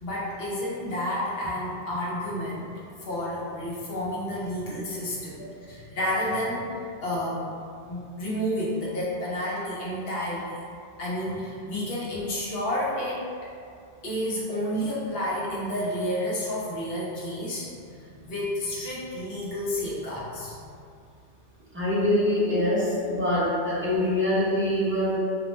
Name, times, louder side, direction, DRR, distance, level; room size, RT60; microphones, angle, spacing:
voice 1, 0.0-6.7 7.0-7.6 7.9-10.5 11.0-13.2 14.0-20.7, left 1 dB, 65° left, -6 dB, 0.9 m, -30 dB
voice 2, 21.7-25.2, left 1 dB, 15° right, -10 dB, 0.4 m, -24 dB
2.5 x 2.1 x 3.0 m, 2.4 s
omnidirectional pair, 1.1 m